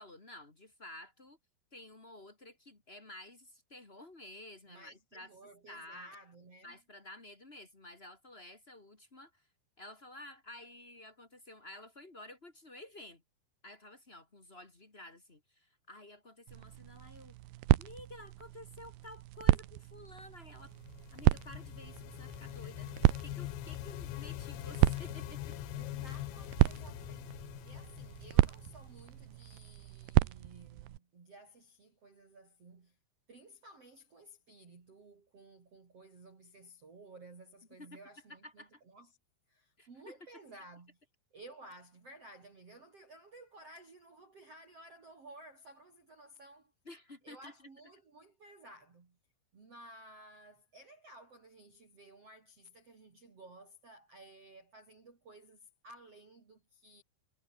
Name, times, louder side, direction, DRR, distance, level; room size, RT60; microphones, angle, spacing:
voice 1, 0.0-1.4 1.7-5.3 5.7-6.1 6.6-9.5 9.8-13.2 13.6-17.3 17.8-20.7 21.1-22.9 23.2-25.5 37.8-38.0 38.3-38.8 39.8-40.2 46.8-47.7, left 1 dB, 30° left, 1.1 m, -52 dB
voice 2, 4.7-6.8 25.7-33.0 33.3-39.1 39.5-41.0 41.3-46.7 47.2-49.2 49.5-57.0, right 2 dB, 30° right, 4.3 m, -55 dB
sound 1, 16.5-31.0, right 17 dB, 80° right, 2.4 m, -32 dB
sound 2, 20.6-29.3, left 20 dB, 85° left, 2.5 m, -43 dB
omnidirectional pair, 5.7 m